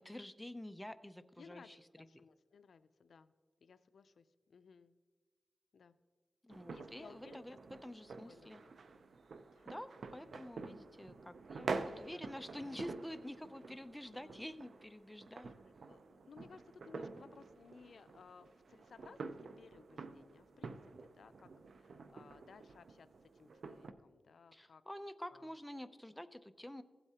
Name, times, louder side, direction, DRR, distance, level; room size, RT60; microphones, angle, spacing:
voice 1, 0.0-1.8 6.4-7.6 7.8-8.6 9.7-15.5 24.5-26.8, left 1 dB, 5° left, 9 dB, 0.5 m, -48 dB
voice 2, 1.4-3.3 3.6-5.0 5.7-6.0 6.5-7.6 8.2-9.1 9.5-9.7 11.8-12.8 14.0-14.4 15.9-24.8 25.3-25.6, left 5 dB, 85° left, 11 dB, 0.4 m, -60 dB
sound 1, 6.5-23.9, right 4 dB, 80° right, 0.5 m, -48 dB
16.0 x 8.0 x 2.9 m, 1.4 s
wide cardioid pair, 80°, 0 cm